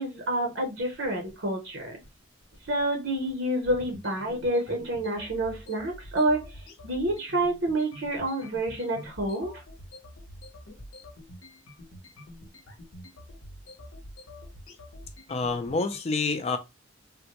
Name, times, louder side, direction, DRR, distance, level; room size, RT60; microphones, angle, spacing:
voice 1, 0.0-2.0 2.7-9.5, right 1 dB, 65° right, 0.7 m, -28 dB
sound 1, 0.8-16.0, left 1 dB, 80° left, 0.8 m, -47 dB
voice 2, 15.3-16.6, left 3 dB, 30° left, 0.4 m, -27 dB
3.5 x 2.1 x 2.9 m
head